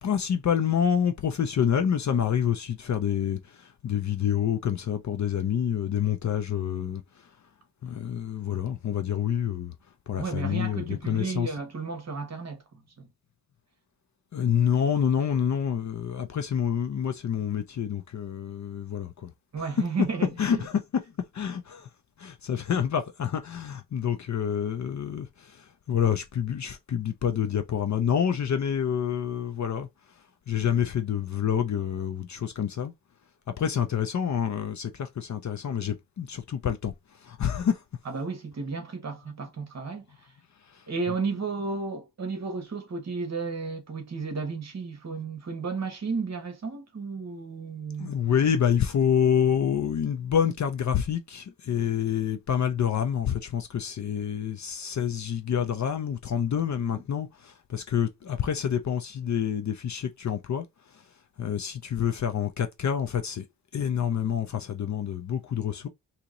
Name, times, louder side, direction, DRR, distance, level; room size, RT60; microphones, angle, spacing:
voice 1, 0.0-7.0 7.8-9.7 10.1-11.6 14.3-19.3 19.6-21.0 21.3-21.9 22.2-29.9 30.5-32.9 33.5-36.9 37.2-37.8 40.7-41.4 48.0-60.7 61.4-63.4 63.7-65.9, left 8 dB, 45° left, 0.5 m, -27 dB
voice 2, 10.2-12.6 13.0-13.1 19.5-20.7 38.0-40.1 40.9-48.1, right 4 dB, 40° right, 1.2 m, -33 dB
2.9 x 2.9 x 3.7 m
wide cardioid pair, 140°, 40 cm